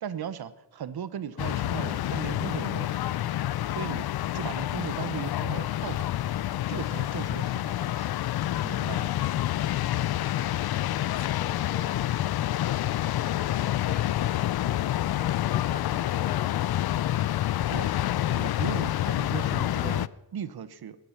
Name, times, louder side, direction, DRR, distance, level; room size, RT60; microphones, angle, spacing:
voice 1, 0.0-4.1 4.3-6.1 6.7-8.1 8.6-9.1 17.7-21.0, right 8 dB, 60° right, 14 dB, 1.1 m, -38 dB
sound 1, 1.4-20.1, left 13 dB, 60° left, 0.5 m, -28 dB
voice 2, 10.7-12.3 12.6-16.9, left 3 dB, 20° left, 15 dB, 0.7 m, -47 dB
18.0 x 11.0 x 5.9 m, 0.94 s
cardioid pair, 105°, 42 cm